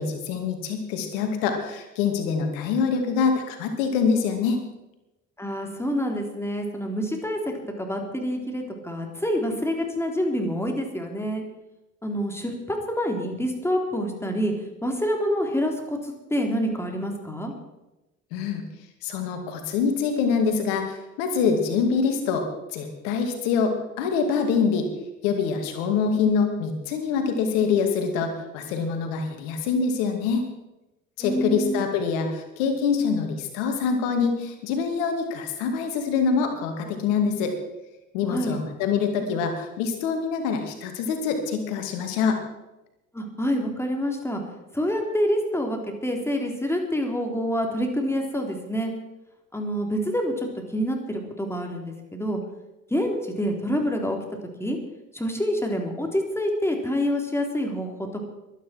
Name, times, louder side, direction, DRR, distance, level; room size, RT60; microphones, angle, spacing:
voice 1, 0.0-4.6 18.3-18.6 19.0-22.5 22.7-24.9 25.2-30.4 31.2-37.5 38.1-42.4, left 5 dB, 65° left, 6 dB, 2.5 m, -25 dB
voice 2, 5.4-11.4 12.0-14.5 14.8-17.5 31.2-31.8 38.3-38.6 43.1-44.4 44.7-48.9 49.5-52.4 52.9-54.2 54.6-54.8 55.1-57.9, equal, 5° left, 2 dB, 3.7 m, -27 dB
22.5 x 9.9 x 4.6 m, 0.97 s
figure-of-eight pair, 50°, 39 cm